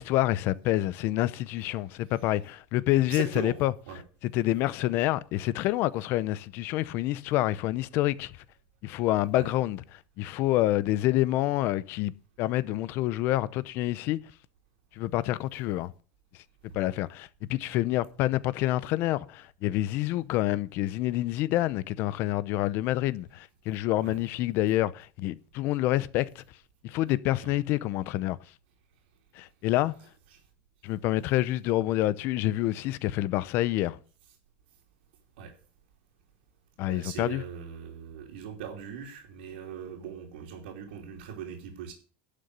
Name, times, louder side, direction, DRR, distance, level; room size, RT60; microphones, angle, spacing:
voice 1, 0.0-3.7 4.2-8.3 8.8-12.1 12.4-14.2 15.0-15.9 16.7-26.4 26.8-28.4 29.4-29.9 30.8-34.0 36.8-37.4, left 15 dB, 40° left, 0.6 m, -27 dB
voice 2, 2.9-3.6 3.9-4.0 9.4-9.5 24.0-24.2 27.4-27.6 30.3-30.4 35.4-35.5 36.9-41.9, right 8 dB, 85° right, 3.0 m, -40 dB
11.5 x 6.7 x 7.9 m
supercardioid pair, 165°, 6 cm